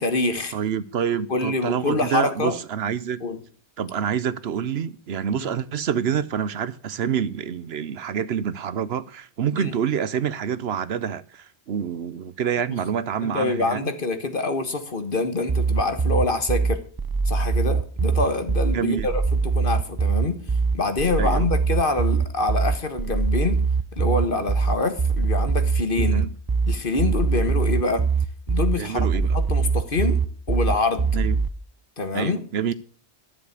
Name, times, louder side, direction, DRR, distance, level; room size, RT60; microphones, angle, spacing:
voice 1, 0.0-0.5 1.3-2.6 3.2-3.4 5.4-5.5 9.6-9.7 13.2-16.8 17.2-20.4 20.7-23.7 23.9-26.3 26.7-28.1 28.5-29.1 29.3-30.2 30.5-31.1 32.0-32.4, left 3 dB, 50° left, 1.7 m, -25 dB
voice 2, 0.5-3.2 3.8-13.9 18.7-19.1 21.2-21.5 26.0-26.3 28.8-29.3 31.1-31.4 32.1-32.7, right 8 dB, 70° right, 1.0 m, -27 dB
sound 1, 15.5-31.5, right 5 dB, 30° right, 0.4 m, -22 dB
12.0 x 7.5 x 8.2 m
omnidirectional pair, 1.1 m